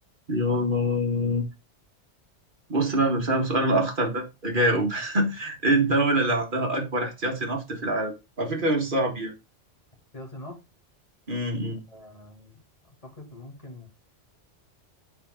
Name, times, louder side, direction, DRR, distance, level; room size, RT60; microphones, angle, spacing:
voice 1, 0.3-1.5 2.7-9.3 11.3-11.8, right 1 dB, 45° right, 2.0 m, -25 dB
voice 2, 10.1-10.6 11.7-13.9, left 1 dB, 30° left, 2.3 m, -44 dB
7.1 x 5.1 x 3.8 m
omnidirectional pair, 1.2 m